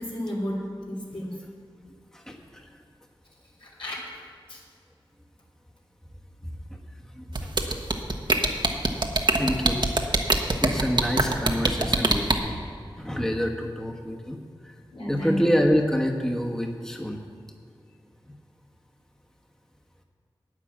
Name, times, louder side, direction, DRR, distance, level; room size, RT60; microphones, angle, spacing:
voice 1, 0.0-1.5 3.6-4.0 4.5-4.6 9.3-9.4 14.9-15.4, equal, 70° left, -5 dB, 2.9 m, -32 dB
voice 2, 2.1-2.7 6.4-6.5 7.0-7.5 9.3-9.8 10.6-12.6 13.0-14.4 14.6-14.7 15.1-17.2, equal, 5° left, 0 dB, 1.3 m, -27 dB
sound 1, 7.4-12.3, right 2 dB, 55° right, 1.0 m, -22 dB
9.9 x 9.5 x 7.4 m, 2.1 s
wide cardioid pair, 70°, 9 cm